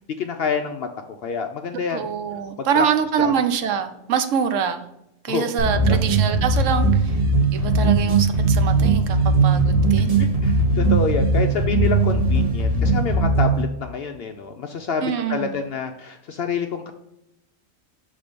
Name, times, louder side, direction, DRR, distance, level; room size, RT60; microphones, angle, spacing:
voice 1, 0.2-2.0 2.8-2.9 3.2-3.3 5.3-5.4 5.9-6.0 10.2-16.9, left 5 dB, 65° left, 0.6 m, -27 dB
voice 2, 1.7-4.9 5.2-7.2 7.5-10.2 15.0-15.6, right 7 dB, 75° right, 1.0 m, -25 dB
sound 1, 5.6-13.6, right 3 dB, 30° right, 1.1 m, -19 dB
6.8 x 3.6 x 5.0 m
omnidirectional pair, 1.4 m